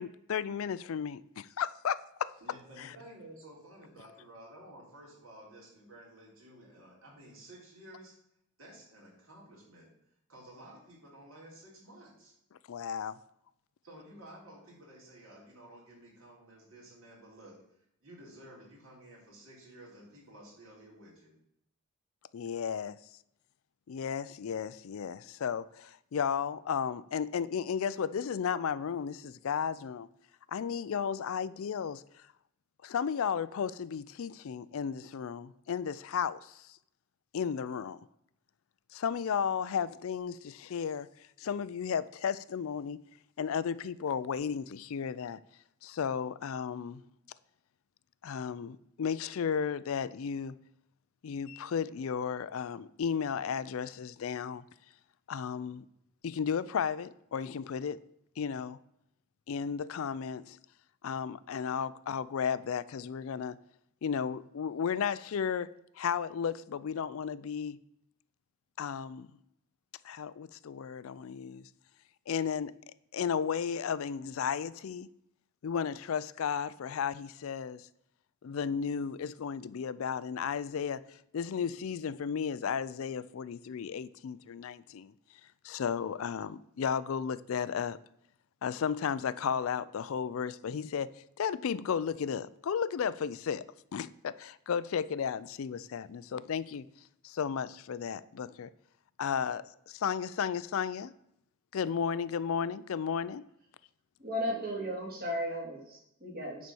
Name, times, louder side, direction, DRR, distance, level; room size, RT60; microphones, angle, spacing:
voice 1, 0.0-2.3 2.8-3.0 12.7-13.2 22.3-23.0 23.9-30.1 30.5-32.3 32.8-36.8 37.3-38.0 38.9-41.1 41.4-43.0 43.4-45.4 45.8-47.0 48.2-50.6 51.2-54.6 55.3-55.8 56.2-58.0 58.4-58.8 59.5-60.6 61.0-63.6 64.0-65.7 66.0-67.8 68.8-69.3 70.0-71.7 72.3-72.7 73.1-75.1 75.6-77.9 78.4-85.1 85.6-88.0 88.6-91.1 91.4-93.6 93.9-96.9 97.2-98.7 99.2-101.1 101.7-103.4, left 7 dB, 70° left, 0.4 m, -34 dB
voice 2, 2.4-8.1 8.6-9.9 10.3-12.3 13.8-17.6 18.0-21.3, right 1 dB, 65° right, 3.8 m, -53 dB
voice 3, 104.2-106.7, equal, 40° right, 2.6 m, -35 dB
9.4 x 4.3 x 6.9 m
head